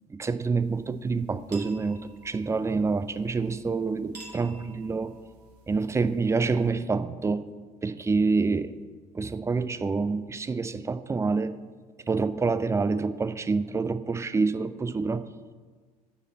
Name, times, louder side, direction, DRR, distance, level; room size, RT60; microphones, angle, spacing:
voice 1, 0.1-2.0 2.2-5.1 5.7-7.5 7.8-8.8 9.1-11.6 12.1-15.2, right 4 dB, 15° right, 12 dB, 0.4 m, -27 dB
sound 1, 0.6-6.7, right 2 dB, 80° right, 1.5 m, -52 dB
9.9 x 4.1 x 7.3 m, 1.5 s
figure-of-eight pair, 55°, 20 cm